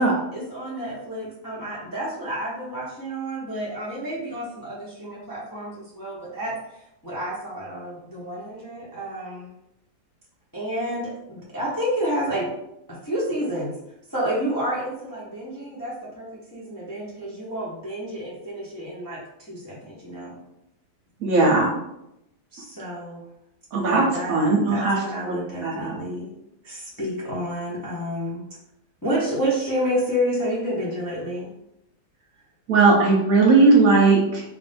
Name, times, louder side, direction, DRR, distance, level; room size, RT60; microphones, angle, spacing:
voice 1, 0.3-6.6 7.0-9.5 10.5-12.5 12.9-13.8 14.1-19.2 19.5-20.4 22.5-23.2 23.9-26.3 26.6-28.4 29.0-31.5, equal, 20° left, -7 dB, 0.5 m, -30 dB
voice 2, 21.2-21.7 23.7-25.9 32.7-34.4, right 3 dB, 65° right, -1 dB, 1.1 m, -18 dB
3.5 x 2.6 x 3.4 m, 0.84 s
omnidirectional pair, 1.9 m